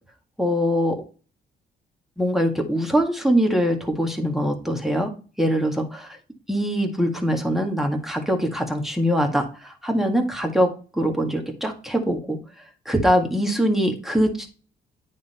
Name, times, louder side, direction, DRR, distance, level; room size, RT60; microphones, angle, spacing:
voice 1, 0.4-1.0 2.2-5.1 5.4-6.2 6.5-12.4 12.9-14.5, equal, ahead, 2 dB, 1.8 m, -23 dB
9.4 x 3.7 x 4.4 m, 0.36 s
cardioid pair, 90°, 20 cm